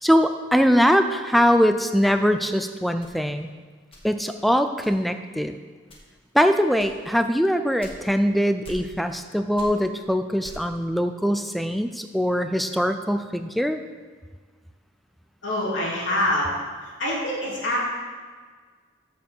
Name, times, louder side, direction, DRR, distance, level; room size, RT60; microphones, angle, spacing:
voice 1, 0.0-3.5 4.0-5.6 6.3-13.8, equal, ahead, 8 dB, 0.4 m, -22 dB
sound 1, 3.0-4.4 4.8-5.3 5.8-6.3 6.8-8.3 8.6-9.3 9.5-10.9, left 1 dB, 30° left, 1.5 m, -45 dB
voice 2, 15.4-16.5 16.8-17.8, left 1 dB, 80° left, -5 dB, 2.9 m, -25 dB
6.9 x 6.4 x 7.1 m, 1.5 s
head